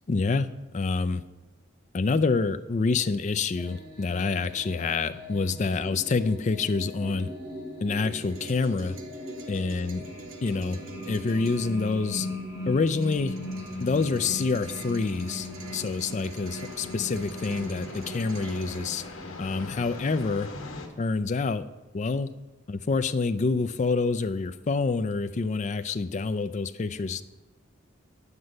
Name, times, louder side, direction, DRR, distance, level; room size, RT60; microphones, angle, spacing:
voice 1, 0.1-0.5 0.7-1.2 1.9-7.3 7.8-9.0 9.5-10.1 10.4-10.8 11.1-12.3 12.7-13.4 13.8-19.0 19.4-20.5 21.0-21.7 21.9-22.3 22.7-27.2, left 4 dB, 35° left, 12 dB, 0.4 m, -27 dB
sound 1, 3.6-19.7, left 1 dB, 15° right, 3.2 m, -39 dB
sound 2, 8.1-18.9, right 2 dB, 85° right, 1.3 m, -45 dB
sound 3, 10.3-20.9, left 2 dB, 85° left, 1.3 m, -45 dB
9.6 x 5.4 x 7.6 m, 1.1 s
head